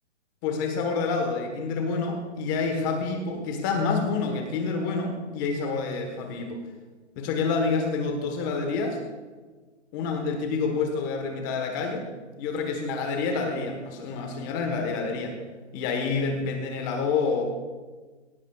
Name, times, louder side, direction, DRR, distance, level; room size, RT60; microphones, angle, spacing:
voice 1, 0.4-6.6 7.1-9.0 9.9-12.1 12.4-15.4 15.7-17.4, left 4 dB, 15° left, 4 dB, 1.3 m, -28 dB
20.5 x 17.5 x 2.4 m, 1.3 s
hypercardioid pair, 165°, 36 cm